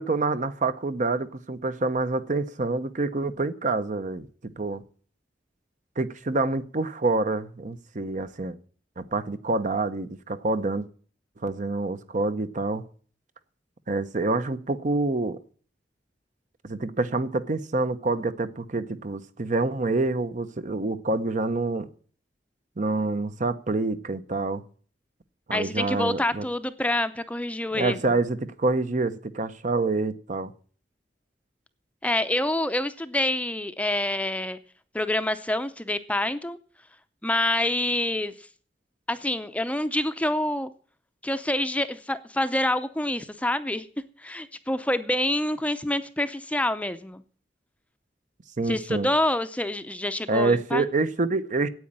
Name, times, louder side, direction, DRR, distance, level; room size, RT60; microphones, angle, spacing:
voice 1, 0.0-4.3 4.6-4.8 6.0-8.6 9.0-10.9 11.4-12.8 13.9-15.4 16.6-21.9 22.8-24.6 25.5-26.4 27.7-30.5 48.6-49.1 50.3-51.7, right 3 dB, 45° right, 12 dB, 0.8 m, -27 dB
voice 2, 25.5-28.2 32.0-34.6 34.9-36.6 37.2-38.3 39.1-40.7 41.2-43.8 44.2-47.2 48.7-50.9, left 1 dB, 10° left, 11 dB, 0.6 m, -27 dB
9.3 x 8.6 x 8.7 m, 0.43 s
head